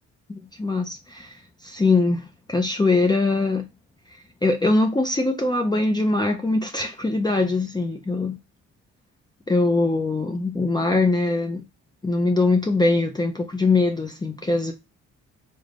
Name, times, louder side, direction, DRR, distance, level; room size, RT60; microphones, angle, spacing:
voice 1, 0.3-3.7 4.4-8.4 9.5-11.6 12.0-14.7, left 3 dB, 15° left, 0.5 m, -22 dB
3.7 x 2.1 x 3.3 m
cardioid pair, 90°, 30 cm